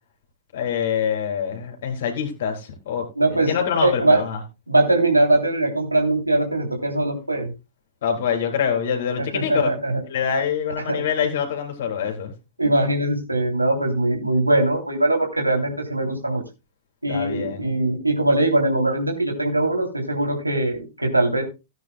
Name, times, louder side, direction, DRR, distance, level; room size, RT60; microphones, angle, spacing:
voice 1, 0.5-4.4 8.0-9.7 10.1-12.3 17.1-17.7, left 7 dB, 60° left, 3 dB, 3.9 m, -25 dB
voice 2, 3.2-3.5 3.8-4.2 4.7-7.5 9.3-9.9 10.9-11.0 12.6-16.4 17.0-21.4, right 2 dB, 90° right, 2 dB, 3.1 m, -21 dB
17.5 x 9.5 x 2.3 m, 0.26 s
figure-of-eight pair, 105°, 0 cm